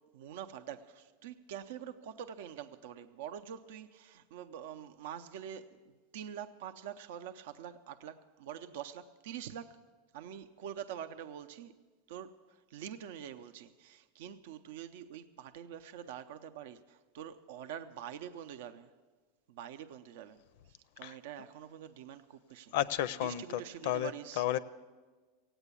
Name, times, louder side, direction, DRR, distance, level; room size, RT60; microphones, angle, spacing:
voice 1, 0.1-9.8 10.1-11.7 12.1-18.9 19.5-20.4 21.0-22.8 23.2-24.5, right 9 dB, 65° right, 10 dB, 0.6 m, -45 dB
voice 2, 22.7-24.6, left 12 dB, 55° left, 16 dB, 0.4 m, -33 dB
16.5 x 9.0 x 8.4 m, 1.4 s
supercardioid pair, 175°, 0 cm